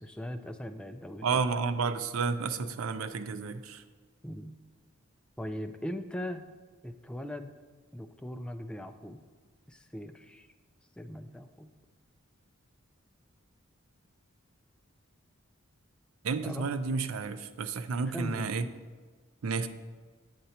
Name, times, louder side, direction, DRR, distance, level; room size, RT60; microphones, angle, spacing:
voice 1, 0.0-1.4 4.2-4.6 5.4-6.4 6.8-7.5 7.9-9.2 9.7-10.5 11.0-11.7 16.4-16.7 18.0-18.5, equal, 5° left, 7 dB, 0.3 m, -40 dB
voice 2, 1.2-3.8 16.2-18.7 19.4-19.7, right 4 dB, 85° right, 11 dB, 0.5 m, -31 dB
7.9 x 7.5 x 2.8 m, 1.4 s
head